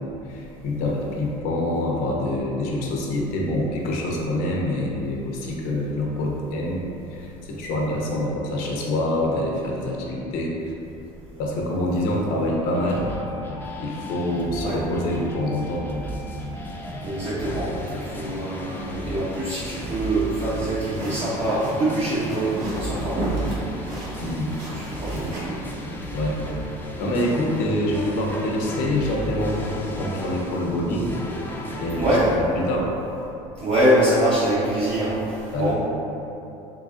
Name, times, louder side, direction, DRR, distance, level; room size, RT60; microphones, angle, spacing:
voice 1, 0.0-6.8 7.1-10.7 11.4-13.1 13.8-15.8 24.2-24.5 25.1-25.4 26.1-26.4 27.0-31.1 31.8-32.1 32.4-32.9 35.5-35.7, left 1 dB, 70° left, -2 dB, 0.7 m, -26 dB
sound 1, 12.7-32.4, equal, 15° left, 0.4 m, -34 dB
voice 2, 17.0-22.5 22.8-23.3 24.7-25.6 31.9-32.3 33.6-35.2 35.6-35.7, right 1 dB, 40° right, -9 dB, 0.7 m, -24 dB
sound 2, 19.7-25.4, equal, 60° right, 1.1 m, -34 dB
3.8 x 3.4 x 2.5 m, 2.9 s
supercardioid pair, 110°, 15 cm